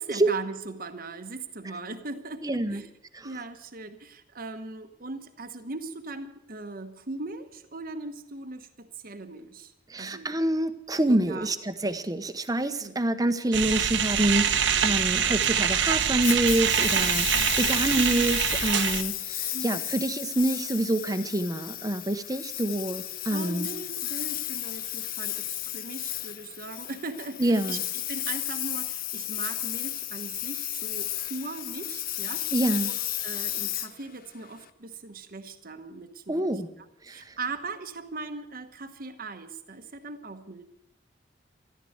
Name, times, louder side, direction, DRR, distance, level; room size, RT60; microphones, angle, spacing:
voice 1, 0.0-2.9 3.2-10.4 11.1-11.6 12.8-13.0 17.3-17.6 19.5-19.8 23.3-32.4 32.9-33.0 33.2-40.6, right 3 dB, 50° right, 7 dB, 1.1 m, -39 dB
voice 2, 2.4-2.8 9.9-23.7 27.4-27.8 32.5-32.9 36.3-36.7 37.1-37.3, right 1 dB, 20° right, 11 dB, 0.9 m, -27 dB
sound 1, 13.5-19.0, right 8 dB, 80° right, 1.2 m, -25 dB
Engine, 16.2-34.7, left 12 dB, 50° left, 0.8 m, -33 dB
14.0 x 12.5 x 7.9 m, 0.84 s
head